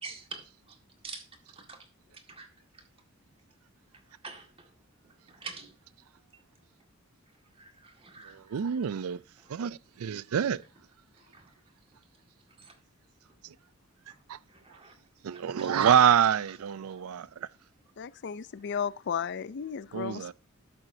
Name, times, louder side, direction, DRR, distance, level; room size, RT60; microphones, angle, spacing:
voice 1, 0.0-0.8 1.0-1.3 1.5-1.9 2.1-2.8 4.0-5.8 6.3-6.4 6.8-6.9 7.3-9.0 9.4-9.5 11.3-11.6 12.6-12.8 14.1-14.2 14.5-15.0 15.3-16.2 16.9-17.0, right 4 dB, 25° right, 1.8 m, -47 dB
voice 2, 8.3-9.2 9.5-10.6 13.4-13.5 14.3-14.4 15.2-17.5 19.9-20.3, right 8 dB, 90° right, 0.4 m, -26 dB
voice 3, 18.0-20.3, left 7 dB, 55° left, 0.4 m, -34 dB
11.5 x 7.9 x 2.7 m
head